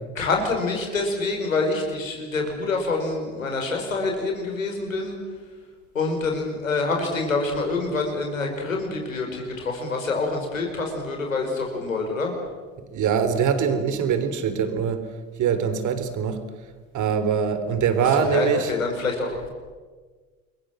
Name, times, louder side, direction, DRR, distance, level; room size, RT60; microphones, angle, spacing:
voice 1, 0.2-5.2 5.9-12.3 18.1-19.5, left 3 dB, 90° left, 2 dB, 5.4 m, -26 dB
voice 2, 12.9-15.0 15.4-16.4 16.9-18.7, right 7 dB, 50° right, 10 dB, 3.7 m, -23 dB
29.5 x 22.0 x 7.8 m, 1.4 s
hypercardioid pair, 65°, 39 cm